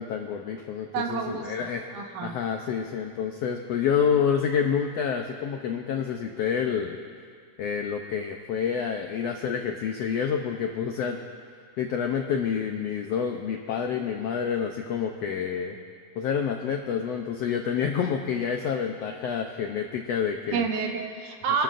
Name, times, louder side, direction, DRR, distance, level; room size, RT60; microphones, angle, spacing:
voice 1, 0.0-1.9 2.2-7.0 7.6-11.2 11.8-15.8 16.2-20.7, left 7 dB, 80° left, 3 dB, 1.4 m, -28 dB
voice 2, 0.9-2.4 20.5-21.6, right 6 dB, 75° right, 1 dB, 2.7 m, -29 dB
28.0 x 13.0 x 2.6 m, 2.1 s
omnidirectional pair, 3.7 m